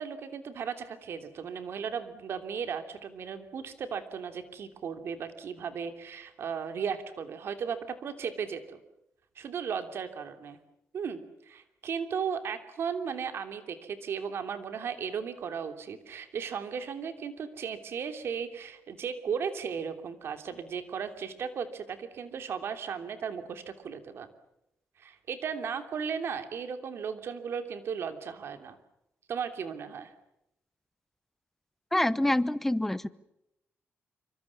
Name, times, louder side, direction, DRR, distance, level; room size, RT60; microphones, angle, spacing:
voice 1, 0.0-8.8 9.3-10.6 10.9-24.3 25.0-28.8 29.3-30.1, right 6 dB, 60° right, 8 dB, 3.0 m, -36 dB
voice 2, 31.9-33.1, left 1 dB, 5° left, 16 dB, 0.9 m, -26 dB
26.5 x 25.5 x 7.3 m, 0.85 s
cardioid pair, 140°, 5 cm